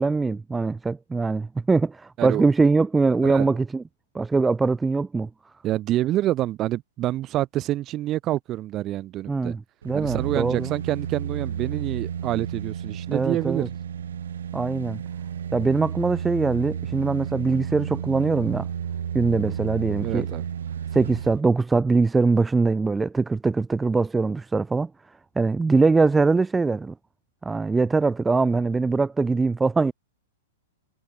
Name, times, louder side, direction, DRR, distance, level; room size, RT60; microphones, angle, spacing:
voice 1, 0.0-3.8 4.1-5.3 9.3-10.7 13.1-13.7 14.5-15.0 15.5-18.7 19.1-20.3 20.9-24.9 25.4-26.9 27.4-29.9, right 4 dB, 5° right, 0.8 m, -22 dB
voice 2, 3.2-3.6 5.6-9.6 9.9-13.6 20.0-20.4, right 14 dB, 25° right, 1.7 m, -27 dB
sound 1, 9.8-21.4 21.8-21.9, right 8 dB, 90° right, 3.9 m, -32 dB
hypercardioid pair, 160°, 0 cm